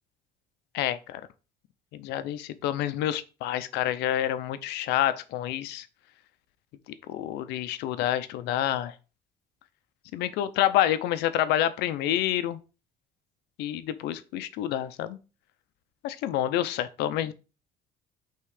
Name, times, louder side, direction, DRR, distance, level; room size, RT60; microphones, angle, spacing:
voice 1, 0.7-1.2 1.9-5.9 7.1-8.9 10.1-12.6 13.6-15.2 16.0-17.3, left 12 dB, 90° left, 0.6 m, -28 dB
5.5 x 3.7 x 4.9 m
cardioid pair, 110°, 17 cm